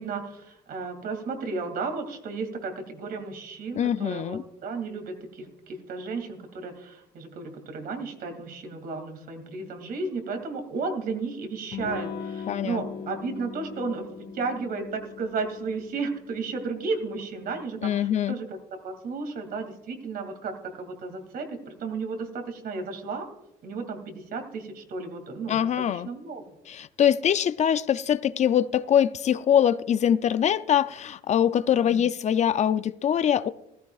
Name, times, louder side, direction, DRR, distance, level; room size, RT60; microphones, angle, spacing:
voice 1, 0.0-18.6 18.8-23.3 23.6-25.6 25.9-26.4 31.8-32.0, right 4 dB, 60° right, 2.4 m, -33 dB
voice 2, 3.8-4.4 12.5-12.8 17.8-18.3 25.5-26.1 26.7-33.5, left 9 dB, 45° left, 0.4 m, -23 dB
Electric guitar / Strum, 11.7-17.1, left 6 dB, 80° left, 2.2 m, -39 dB
15.0 x 14.0 x 2.4 m
cardioid pair, 110°, 17 cm